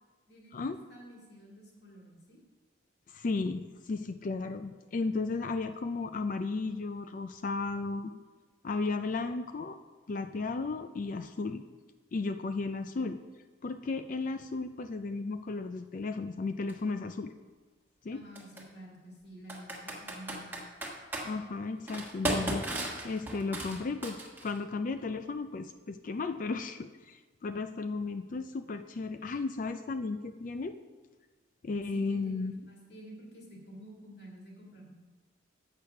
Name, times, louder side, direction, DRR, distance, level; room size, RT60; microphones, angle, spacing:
voice 1, 0.3-2.4 18.1-20.6 31.9-34.9, right 1 dB, 60° left, -1 dB, 2.3 m, -50 dB
voice 2, 3.1-8.1 8.6-9.8 10.1-11.6 12.1-13.2 13.6-17.3 18.0-18.2 21.2-24.2 24.4-30.7 31.6-32.6, left 3 dB, 45° left, 9 dB, 0.4 m, -34 dB
Computer keyboard, 16.7-16.8 18.4-18.6 19.5-21.3 21.9-24.6, right 1 dB, 10° right, 1.3 m, -35 dB
8.1 x 6.7 x 5.7 m, 1.3 s
head